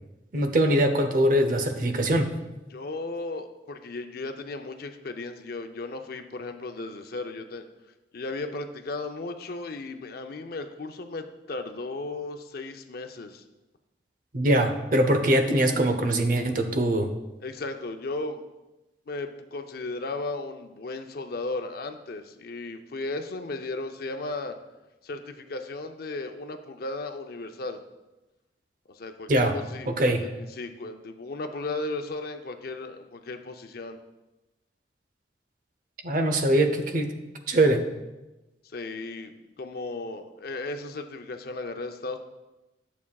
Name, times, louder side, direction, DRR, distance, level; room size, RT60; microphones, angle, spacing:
voice 1, 0.3-2.3 14.3-17.1 29.3-29.6 30.0-30.2 36.0-37.1 37.5-37.8, right 1 dB, 50° right, 6 dB, 0.7 m, -22 dB
voice 2, 2.7-7.7 8.1-13.4 17.4-18.4 19.1-24.6 25.0-27.8 28.9-34.0 38.7-39.3 39.6-42.2, left 2 dB, 60° left, 7 dB, 0.6 m, -35 dB
10.5 x 7.1 x 2.3 m, 1.0 s
head